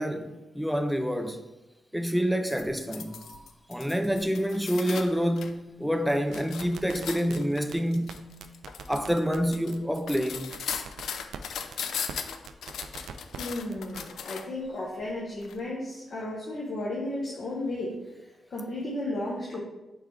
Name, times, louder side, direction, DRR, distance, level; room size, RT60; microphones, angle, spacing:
voice 1, 0.0-1.4 1.9-3.4 3.7-8.3 8.9-10.5, equal, ahead, 0.4 m, -28 dB
sound 1, 2.5-5.5 5.9-14.6 15.4-15.5, left 7 dB, 85° left, 0.3 m, -38 dB
sound 2, 6.1-7.4 7.7-7.8 8.1-8.2 8.4-9.4 9.7-9.8 10.1-10.2 10.5-11.4 11.7-11.8 12.1-12.2 12.5-13.4 13.7-14.0, right 7 dB, 80° right, 0.3 m, -42 dB
voice 2, 13.4-18.0 18.5-19.6, left 1 dB, 50° left, 0.9 m, -33 dB
4.5 x 3.6 x 3.3 m
wide cardioid pair, 130°, 0 cm